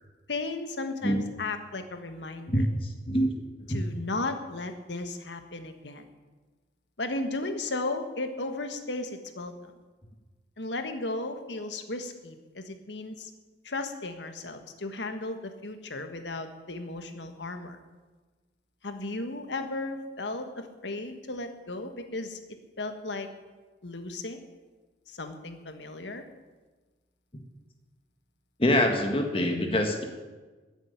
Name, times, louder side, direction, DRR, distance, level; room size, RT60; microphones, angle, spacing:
voice 1, 0.3-2.7 3.7-6.1 7.0-9.7 10.6-13.3 13.6-17.8 18.8-22.4 22.8-23.3 23.8-24.4 25.1-26.2, left 2 dB, 90° left, 7 dB, 1.6 m, -35 dB
voice 2, 28.6-30.0, left 1 dB, 30° left, 4 dB, 1.8 m, -24 dB
14.0 x 8.1 x 9.8 m, 1.3 s
head